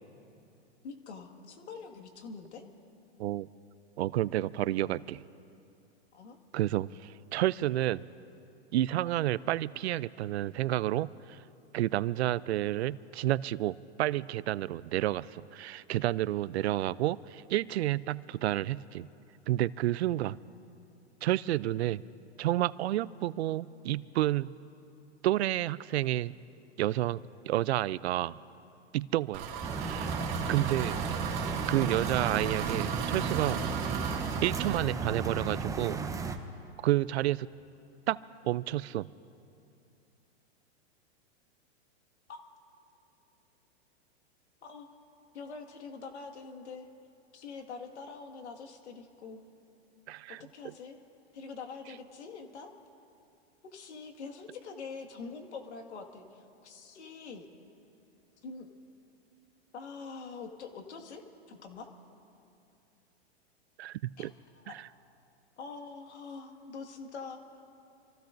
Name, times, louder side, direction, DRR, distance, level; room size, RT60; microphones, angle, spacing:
voice 1, 0.8-2.6 6.1-6.4 20.1-20.3 42.3-42.4 44.6-44.9 45.3-46.9 47.3-49.4 50.4-51.0 51.3-52.7 53.6-57.5 58.4-58.7 59.7-61.9 64.2-64.8 65.6-67.4, left 4 dB, 80° left, 4 dB, 2.0 m, -45 dB
voice 2, 4.0-5.2 6.5-8.0 8.7-11.4 11.7-19.1 19.5-20.4 21.2-22.0 22.4-24.5 25.2-26.3 26.8-28.4 28.9-29.5 29.8-30.1 30.5-31.0 31.7-33.6 34.4-36.0 36.8-37.5 38.1-38.2 38.4-39.1 50.1-50.4 63.8-64.3 64.7-64.9, right 14 dB, 70° right, 19 dB, 0.5 m, -30 dB
Engine, 29.3-34.8, right 6 dB, 40° right, 2.2 m, -36 dB
sound 1, 29.6-36.4, right 4 dB, 10° right, 0.7 m, -34 dB
27.5 x 15.5 x 2.6 m, 2.7 s
hypercardioid pair, 130°, 33 cm